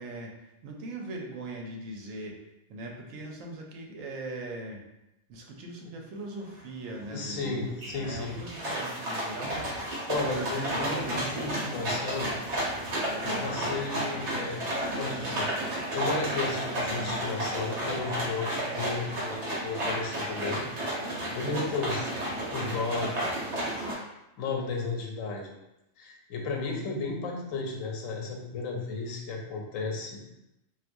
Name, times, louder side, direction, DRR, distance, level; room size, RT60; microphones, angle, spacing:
voice 1, 0.0-2.4 2.7-4.8 5.3-11.5 21.0-21.4, right 2 dB, 85° right, 1 dB, 1.0 m, -40 dB
sound 1, 6.6-6.7 7.0-7.4 7.8-23.9, right 1 dB, 60° right, 1.3 m, -32 dB
voice 2, 7.1-8.3 10.1-12.3 13.2-14.6 14.9-15.5 15.9-20.6 21.3-22.1 22.4-23.3 24.4-25.5 26.0-30.2, left 3 dB, 85° left, 0 dB, 1.0 m, -34 dB
3.9 x 2.4 x 2.5 m, 0.90 s
omnidirectional pair, 1.4 m